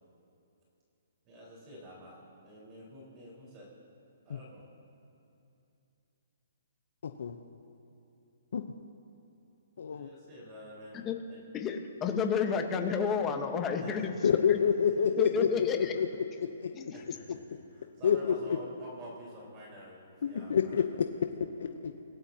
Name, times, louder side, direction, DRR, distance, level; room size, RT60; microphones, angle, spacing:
voice 1, 1.2-3.7 4.2-4.6 9.9-11.0 11.3-11.4 13.8-14.6 14.9-15.5 16.9-20.8, equal, 25° right, -5 dB, 4.5 m, -49 dB
voice 2, 7.0-7.4 8.5-8.6 9.8-10.1 14.2-16.1 16.4-16.7 18.0-18.4 20.2-20.8 21.6-21.9, left 7 dB, 70° left, 6 dB, 0.8 m, -28 dB
voice 3, 11.5-14.1 14.5-14.6 15.2-15.9 16.7-16.9, left 6 dB, 20° left, 5 dB, 1.3 m, -30 dB
27.0 x 17.0 x 2.9 m, 2.8 s
hypercardioid pair, 150°, 0 cm